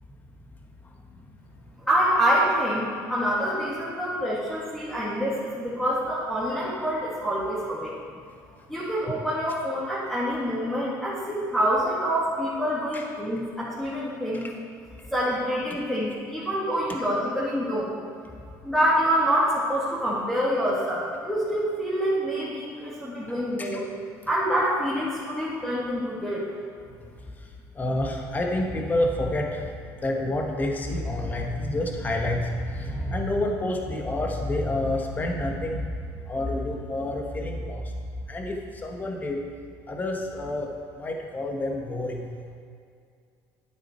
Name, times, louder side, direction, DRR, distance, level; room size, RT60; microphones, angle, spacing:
voice 1, 1.8-7.9 8.7-14.5 15.1-17.9 18.6-23.9 24.3-26.4, equal, 5° left, -9 dB, 2.2 m, -26 dB
voice 2, 27.8-29.6 30.0-35.9 36.3-37.8 38.3-39.4 39.9-42.3, left 1 dB, 25° left, 2 dB, 1.4 m, -28 dB
9.3 x 8.0 x 4.5 m, 2.3 s
cardioid pair, 110°, 7 cm